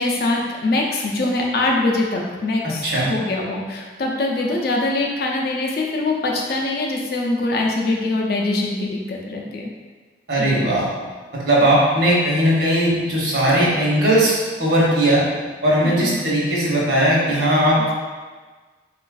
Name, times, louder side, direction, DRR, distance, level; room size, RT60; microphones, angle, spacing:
voice 1, 0.0-9.7 10.4-10.6 15.8-16.2, left 2 dB, 55° left, 0 dB, 0.5 m, -23 dB
voice 2, 10.3-10.8 11.4-14.3 14.6-15.2 15.6-17.8, right 1 dB, 65° right, -6 dB, 0.9 m, -18 dB
4.0 x 2.4 x 2.3 m, 1.4 s
head